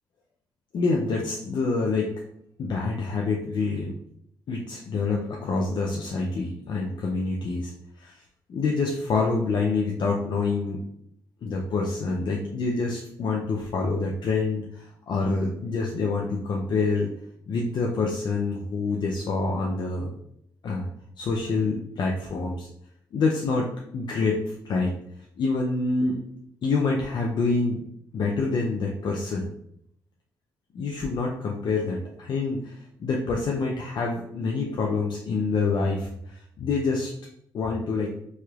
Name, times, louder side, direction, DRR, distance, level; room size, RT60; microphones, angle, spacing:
voice 1, 0.7-2.1 2.6-3.9 4.5-7.7 8.0-8.2 8.5-10.8 11.4-17.1 17.5-20.1 20.6-20.9 21.2-22.7 23.1-24.9 25.4-26.2 26.6-27.8 28.1-29.5 30.7-37.1 37.5-38.1, left 3 dB, 60° left, -2 dB, 0.5 m, -26 dB
3.1 x 2.8 x 2.3 m, 0.71 s
cardioid pair, 75°, 9 cm